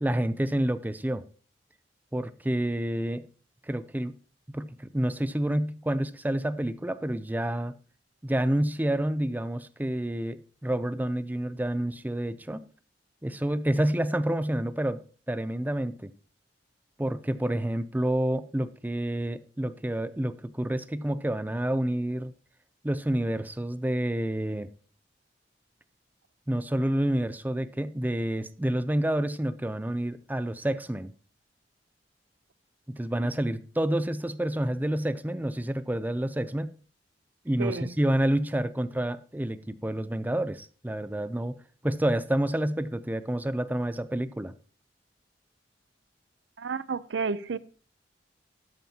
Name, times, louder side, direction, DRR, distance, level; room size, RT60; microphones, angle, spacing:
voice 1, 0.0-1.2 2.1-3.2 3.7-4.1 4.5-7.7 8.2-12.6 13.2-15.0 15.3-16.1 17.0-22.3 22.8-24.7 26.5-31.1 32.9-36.7 37.5-41.5 41.8-44.5, right 1 dB, 10° right, 0.5 m, -28 dB
voice 2, 37.6-37.9 46.6-47.6, right 4 dB, 85° right, 0.6 m, -31 dB
12.5 x 9.3 x 2.9 m
head